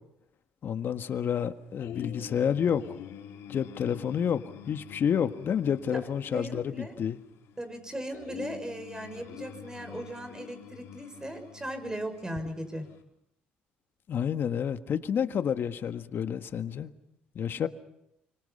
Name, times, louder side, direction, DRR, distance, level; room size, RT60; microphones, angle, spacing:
voice 1, 0.6-2.8 3.5-4.4 4.7-7.2 14.1-16.9 17.3-17.7, left 8 dB, 55° left, 1.6 m, -29 dB
sound 1, 1.8-13.0, left 9 dB, 70° left, 4.4 m, -46 dB
voice 2, 6.3-7.0 7.6-12.9, right 1 dB, 15° right, 6.2 m, -38 dB
29.5 x 26.0 x 5.6 m
supercardioid pair, 65°, 4 cm